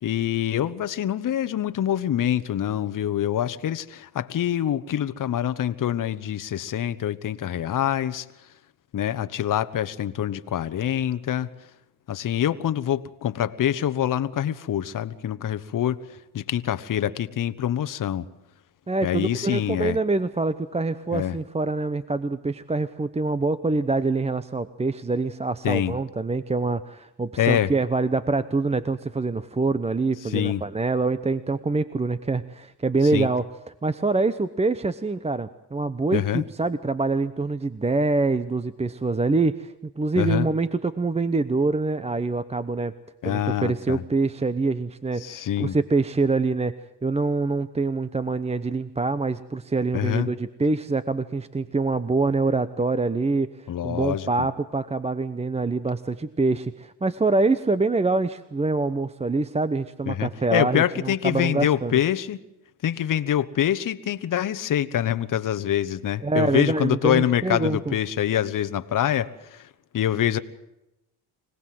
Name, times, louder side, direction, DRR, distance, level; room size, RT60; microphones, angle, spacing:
voice 1, 0.0-8.3 8.9-11.5 12.1-16.0 16.3-18.2 19.0-20.0 21.1-21.4 25.6-25.9 27.4-27.7 30.2-30.6 33.1-33.3 36.1-36.4 40.2-40.5 43.2-44.0 45.2-45.7 49.9-50.3 53.7-54.5 60.1-62.4 62.8-69.7 69.9-70.4, left 10 dB, 45° left, 12 dB, 1.2 m, -25 dB
voice 2, 18.9-33.5 33.8-42.9 43.2-62.0 66.2-68.0, right 3 dB, 15° right, 14 dB, 0.8 m, -25 dB
25.0 x 18.5 x 7.7 m, 0.90 s
cardioid pair, 90°, 43 cm